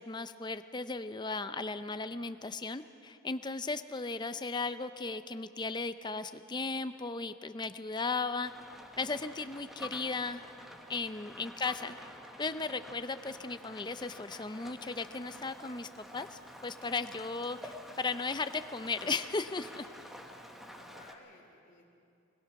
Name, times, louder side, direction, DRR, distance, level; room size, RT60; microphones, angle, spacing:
voice 1, 0.0-8.5 9.0-10.4 10.9-12.0 12.4-19.9, left 4 dB, 20° left, 11 dB, 0.5 m, -36 dB
voice 2, 1.7-2.1 20.1-21.8, left 2 dB, 40° left, -2 dB, 3.1 m, -60 dB
Rain, 8.4-21.1, equal, ahead, 1.1 m, -49 dB
22.0 x 20.5 x 5.9 m, 2.6 s
head